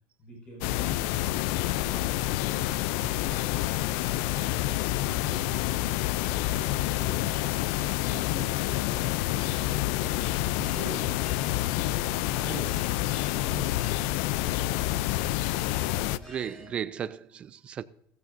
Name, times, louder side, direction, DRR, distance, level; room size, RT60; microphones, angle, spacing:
voice 1, 0.2-1.1 1.8-4.5 4.8-6.7 6.9-7.5 7.9-10.2 10.5-13.0 13.4-14.1, equal, 25° left, 5.2 m, -44 dB
sound 1, 0.6-16.2, left 16 dB, 65° left, 0.4 m, -28 dB
Bell, 9.2-16.7, left 2 dB, 10° left, 3.2 m, -51 dB
voice 2, 16.1-17.8, right 8 dB, 25° right, 0.4 m, -35 dB
16.0 x 15.0 x 2.6 m
cardioid pair, 175°, 5 cm